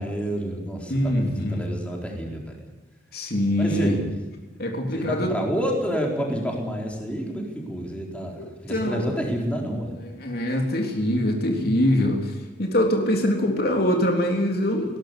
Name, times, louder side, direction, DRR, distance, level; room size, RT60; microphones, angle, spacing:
voice 1, 0.0-2.6 3.6-4.1 4.9-9.9, equal, 5° left, 0 dB, 4.3 m, -29 dB
voice 2, 0.9-1.6 3.1-4.0 4.6-5.3 8.4-9.2 10.0-15.0, left 1 dB, 55° left, 2 dB, 3.6 m, -24 dB
21.0 x 18.0 x 8.5 m, 1.1 s
head